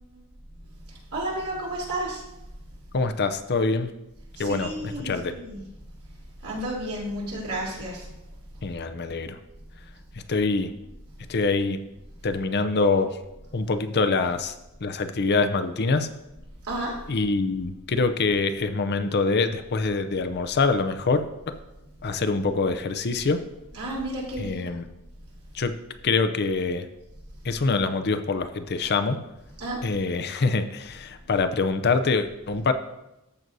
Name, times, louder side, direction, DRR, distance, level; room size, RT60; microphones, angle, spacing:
voice 1, 1.1-2.2 4.4-5.6 6.4-8.0 16.7-16.9 23.7-24.6 29.6-29.8, right 1 dB, 80° right, -4 dB, 3.4 m, -31 dB
voice 2, 2.9-3.9 4.4-5.3 8.6-9.4 10.1-10.7 11.3-11.8 12.2-13.2 13.5-14.5 14.8-16.1 17.1-21.2 22.0-23.4 24.4-24.9 25.5-25.7 26.0-26.9 27.4-29.2 29.8-32.7, left 4 dB, 50° left, 9 dB, 0.6 m, -25 dB
14.0 x 6.1 x 2.7 m, 0.94 s
head